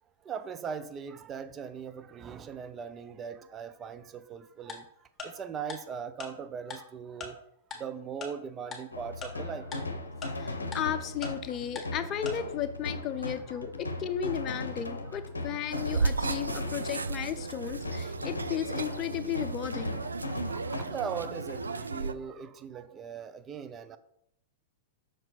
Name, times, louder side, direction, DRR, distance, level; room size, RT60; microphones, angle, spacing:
voice 1, 0.2-4.9 5.2-7.4 7.7-9.9 13.5-13.6 20.5-24.0, right 7 dB, 25° right, 0.5 m, -39 dB
Tick-tock, 4.7-4.8 5.2-5.3 5.7-5.8 6.2-6.3 6.7-6.8 7.2-7.3 7.7-7.8 8.2-8.3 8.7-8.8 9.2-9.3 9.7-9.8 10.2-10.3 10.7-10.8 11.2-11.3 11.8-11.9 12.3-12.4, left 4 dB, 15° left, 1.6 m, -38 dB
sound 1, 8.9-21.7, left 2 dB, 85° left, 0.7 m, -38 dB
voice 2, 10.3-20.0, left 9 dB, 35° left, 0.6 m, -34 dB
sound 2, 15.7-22.1, right 4 dB, 85° right, 0.3 m, -34 dB
6.1 x 4.5 x 4.2 m
figure-of-eight pair, 100°, 0 cm